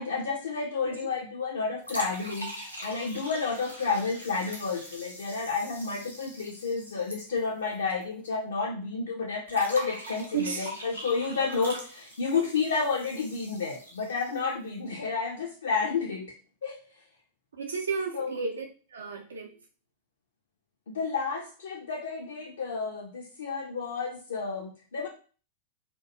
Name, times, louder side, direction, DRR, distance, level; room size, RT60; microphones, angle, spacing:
voice 1, 0.0-16.3 16.6-16.8 18.1-18.3 20.9-25.1, left 4 dB, 65° left, -1 dB, 0.3 m, -31 dB
sound 1, 1.8-8.0 8.3-8.4 9.5-14.5, equal, 90° left, 0.7 m, -42 dB
voice 2, 10.3-10.7 17.5-18.7 18.9-19.5, right 5 dB, 70° right, 2 dB, 0.4 m, -32 dB
2.3 x 2.1 x 2.8 m, 0.38 s
figure-of-eight pair, 90°, 0 cm